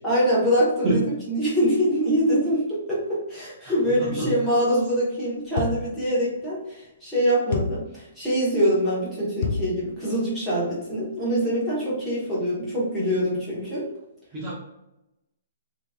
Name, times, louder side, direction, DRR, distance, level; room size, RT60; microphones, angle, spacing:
voice 1, 0.0-13.9, equal, 5° left, -9 dB, 1.1 m, -24 dB
voice 2, 3.6-4.3 14.3-14.5, right 2 dB, 20° right, -8 dB, 1.0 m, -27 dB
sound 1, 5.6-6.0 7.5-7.9 9.4-9.8, left 5 dB, 45° left, 0.4 m, -28 dB
3.0 x 2.8 x 3.4 m, 0.91 s
hypercardioid pair, 175°, 0 cm